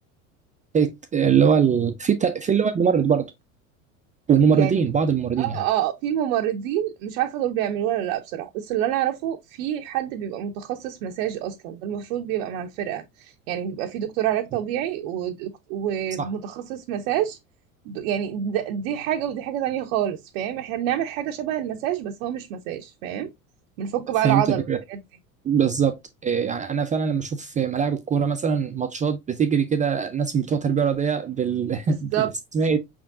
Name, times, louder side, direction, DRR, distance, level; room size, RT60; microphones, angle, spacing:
voice 1, 0.7-3.3 4.3-5.6 16.2-16.3 24.2-24.8 25.4-26.0 26.2-32.8, right 7 dB, 20° right, 0.4 m, -22 dB
voice 2, 5.4-17.4 17.9-23.3 23.8-24.6 24.9-25.0 31.9-32.3, right 11 dB, 65° right, 0.6 m, -27 dB
5.0 x 3.6 x 2.4 m
hypercardioid pair, 80°, 42 cm